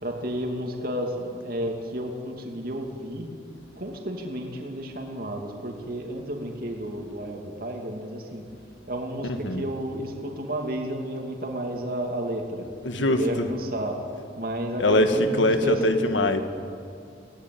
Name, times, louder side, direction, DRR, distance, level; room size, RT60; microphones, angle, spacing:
voice 1, 0.0-3.3 3.8-8.4 8.9-12.7 13.0-14.0 14.4-15.7, right 1 dB, 50° right, 2 dB, 2.6 m, -32 dB
voice 2, 9.3-9.7 12.8-13.5 14.8-16.4, left 1 dB, 85° left, 7 dB, 1.8 m, -22 dB
23.0 x 17.0 x 9.2 m, 2.4 s
head